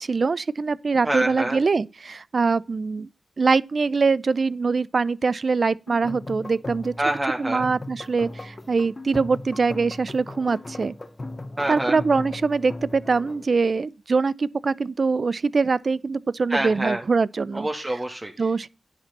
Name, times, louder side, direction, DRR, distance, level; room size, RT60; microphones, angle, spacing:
voice 1, 0.0-3.1 3.4-6.9 7.4-10.9 11.7-17.7 18.4-18.7, right 4 dB, 65° right, 0.5 m, -23 dB
voice 2, 1.0-1.6 7.0-7.6 11.6-12.0 16.5-17.0 17.5-18.3, right 1 dB, 30° right, 2.0 m, -26 dB
sound 1, 5.9-13.4, left 2 dB, 40° left, 1.6 m, -37 dB
10.5 x 7.8 x 4.2 m
cardioid pair, 45°, 0 cm